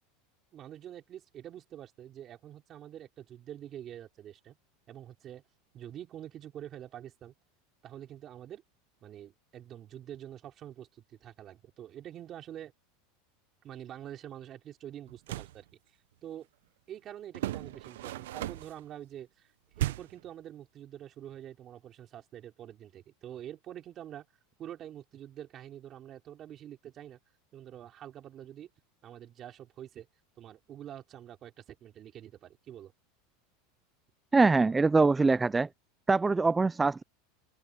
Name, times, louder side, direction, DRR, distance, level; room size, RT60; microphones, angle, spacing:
voice 1, 0.5-4.6 4.9-5.4 5.7-7.3 7.8-8.6 9.0-12.7 13.6-15.7 16.2-16.5 16.9-19.5 19.8-24.3 24.6-27.2 27.5-28.7 29.0-30.1 30.4-32.9, right 11 dB, 30° right, 4.1 m, -46 dB
sound 1, 15.1-15.6 17.3-18.8 19.8-20.3, right 14 dB, 85° right, 0.7 m, -35 dB
voice 2, 34.3-35.7 36.1-37.0, right 3 dB, 10° right, 0.4 m, -23 dB
supercardioid pair, 150°, 0 cm